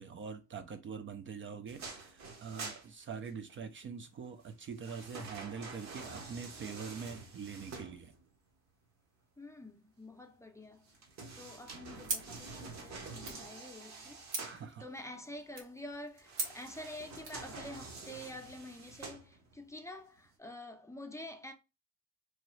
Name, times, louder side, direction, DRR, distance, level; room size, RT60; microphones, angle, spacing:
voice 1, 0.0-8.1 14.4-14.9, right 6 dB, 40° right, 0.4 m, -44 dB
sound 1, 1.7-3.6 4.4-8.4 10.8-14.7 16.2-19.7 20.2-20.3, right 3 dB, 65° right, 1.0 m, -48 dB
voice 2, 9.4-10.9 11.4-14.3 14.8-21.5, left 1 dB, 10° left, 0.5 m, -48 dB
sound 2, 12.0-17.4, right 3 dB, 80° right, 1.3 m, -44 dB
3.0 x 2.3 x 3.0 m
cardioid pair, 90°, 30 cm